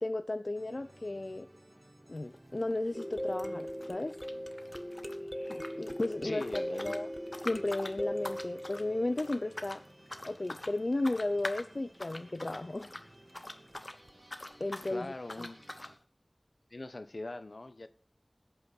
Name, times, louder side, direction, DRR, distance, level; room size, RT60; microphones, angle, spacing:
voice 1, 0.0-1.5 2.1-4.1 5.5-7.1 7.4-9.8 10.2-12.9 14.6-15.1, left 2 dB, 70° left, 0.6 m, -34 dB
sound 1, 0.5-16.0, right 1 dB, 40° right, 2.7 m, -58 dB
sound 2, 2.2-2.4 2.6-5.2 5.5-14.0 14.2-14.9 15.3-15.9, left 1 dB, 50° left, 1.3 m, -45 dB
sound 3, 2.9-9.8 14.1-14.2 14.6-14.7, equal, ahead, 1.1 m, -40 dB
voice 2, 5.2-5.8 6.2-7.0 14.9-15.6 16.7-17.9, left 2 dB, 85° left, 1.1 m, -42 dB
20.0 x 8.6 x 4.1 m
wide cardioid pair, 45°, 0 cm